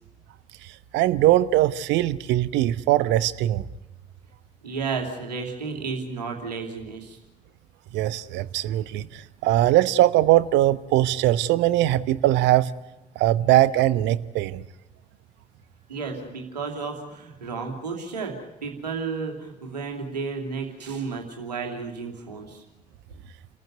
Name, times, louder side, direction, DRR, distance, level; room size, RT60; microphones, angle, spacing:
voice 1, 0.9-3.6 7.9-12.7 13.2-14.6, right 14 dB, 60° right, 16 dB, 1.0 m, -21 dB
voice 2, 4.6-7.2 15.9-18.3 18.6-22.6, right 5 dB, 85° right, 2 dB, 3.0 m, -32 dB
29.5 x 15.0 x 9.5 m, 1.0 s
figure-of-eight pair, 45°, 21 cm